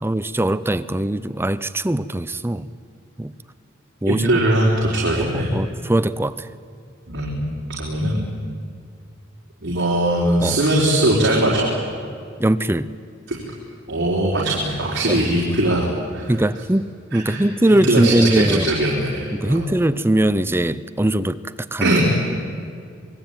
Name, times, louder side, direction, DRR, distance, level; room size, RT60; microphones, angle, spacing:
voice 1, 0.0-2.7 3.2-3.3 4.0-4.3 5.2-6.5 10.4-10.6 12.4-12.9 15.1-15.2 16.3-18.7 19.3-21.9, right 1 dB, 10° right, 14 dB, 0.6 m, -21 dB
voice 2, 4.1-5.5 7.1-7.5 7.8-8.2 9.6-11.8 13.3-13.4 13.9-16.4 17.1-19.7 21.8-22.2, right 1 dB, 60° right, -3 dB, 4.4 m, -20 dB
26.0 x 21.5 x 9.1 m, 2.3 s
head